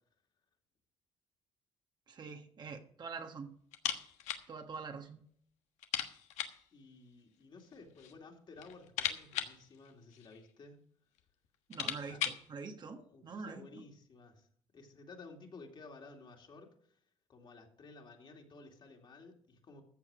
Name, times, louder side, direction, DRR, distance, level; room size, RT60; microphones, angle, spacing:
voice 1, 2.1-3.5 4.5-5.2 11.7-13.0 13.2-13.8, right 5 dB, 40° right, 5 dB, 1.3 m, -45 dB
sound 1, 3.7-4.5 4.8-4.9 5.2-5.3 5.8-6.7 7.6-8.2 8.5-10.5 11.2-11.3 11.5-12.5, left 10 dB, 85° left, 1.3 m, -39 dB
voice 2, 6.7-10.8 11.9-12.2 12.8-14.5 14.7-17.0 17.3-19.8, left 3 dB, 45° left, 2 dB, 2.5 m, -54 dB
14.5 x 7.3 x 5.0 m, 0.63 s
cardioid pair, 115°, 12 cm